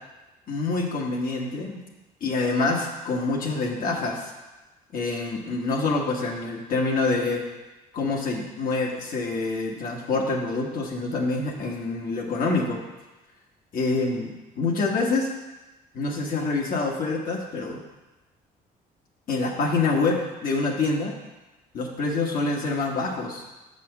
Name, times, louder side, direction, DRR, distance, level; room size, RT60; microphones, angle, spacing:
voice 1, 0.5-1.8 2.2-4.3 4.9-7.4 7.9-12.8 13.7-14.3 14.6-15.3 15.9-17.8 19.3-21.1 21.7-23.4, left 3 dB, 55° left, 0 dB, 1.5 m, -26 dB
6.1 x 5.3 x 5.9 m, 1.1 s
cardioid pair, 110°, 17 cm